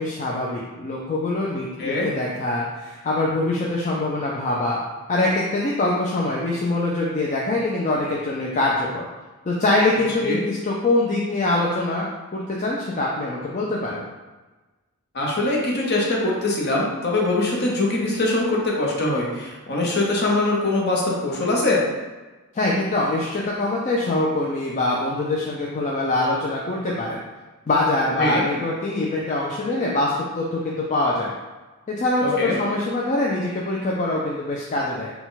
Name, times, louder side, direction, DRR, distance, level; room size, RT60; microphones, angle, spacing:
voice 1, 0.0-4.8 5.1-9.0 9.5-12.1 12.3-14.1 22.5-27.2 27.7-31.3 31.9-35.1, left 2 dB, 35° left, -4 dB, 0.4 m, -24 dB
voice 2, 1.8-2.1 10.2-10.4 15.1-21.8 28.2-28.5 32.2-32.6, left 2 dB, 50° left, -2 dB, 0.9 m, -22 dB
4.1 x 2.3 x 4.0 m, 1.2 s
head